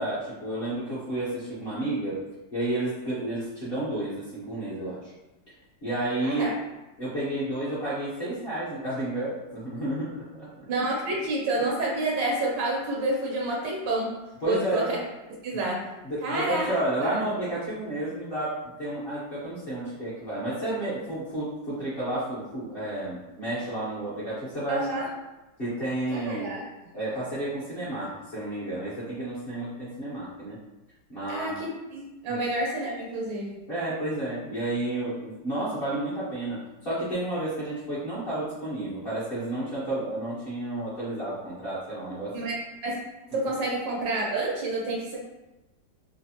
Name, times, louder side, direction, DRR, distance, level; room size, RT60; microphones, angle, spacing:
voice 1, 0.0-2.2 2.5-5.1 5.8-6.5 7.0-10.5 14.4-14.9 15.5-15.6 16.0-25.0 25.6-26.5 26.9-30.6 31.1-31.5 32.3-32.4 33.7-42.4, right 1 dB, 45° left, -12 dB, 0.7 m, -31 dB
voice 2, 6.2-6.5 10.7-14.2 14.5-15.0 15.4-15.9 16.2-17.3 24.7-25.1 26.1-26.7 31.3-33.6 42.3-42.6 42.8-43.0 43.3-45.2, right 2 dB, 80° right, -3 dB, 1.4 m, -29 dB
3.2 x 2.0 x 2.7 m, 1.0 s
omnidirectional pair, 2.0 m